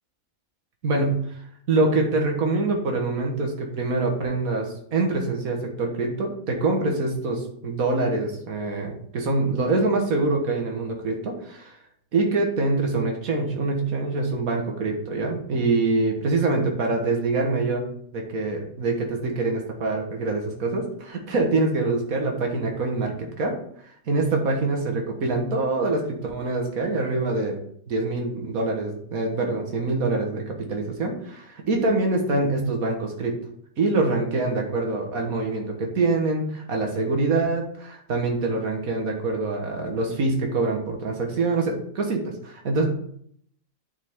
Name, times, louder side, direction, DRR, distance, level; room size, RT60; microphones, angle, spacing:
voice 1, 0.8-1.2 1.7-11.7 12.1-17.8 18.1-23.6 23.8-27.6 27.9-33.4 33.8-42.9, right 3 dB, 85° right, 2 dB, 2.0 m, -25 dB
9.5 x 6.0 x 3.7 m, 0.65 s
omnidirectional pair, 1.4 m